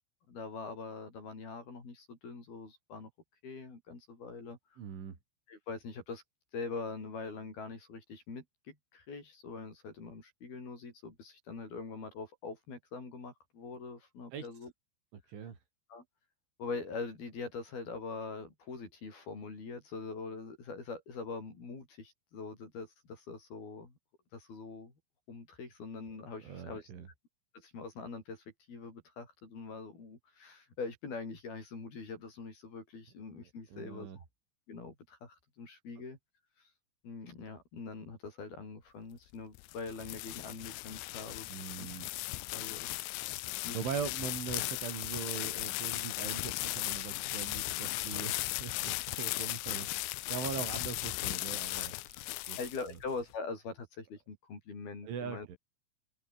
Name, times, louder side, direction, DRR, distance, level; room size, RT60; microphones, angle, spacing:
voice 1, 0.3-3.1 3.4-4.6 5.5-6.2 6.5-14.7 15.9-16.0 16.6-24.0 24.3-24.9 25.3-26.9 27.5-34.2 34.7-36.2 37.0-41.5 41.8-41.9 42.5-42.9 43.6-43.8 52.6-55.5, left 4 dB, 50° left, 8.6 m, -43 dB
voice 2, 4.8-5.2 14.3-14.5 15.3-15.6 26.4-27.1 33.7-34.2 41.5-42.1 43.7-49.9 50.3-52.2 52.5-52.6 52.9-53.0 55.0-55.6, right 7 dB, 75° right, 6.7 m, -41 dB
sound 1, 39.3-53.2, left 21 dB, 80° left, 2.8 m, -37 dB
omnidirectional pair, 5.6 m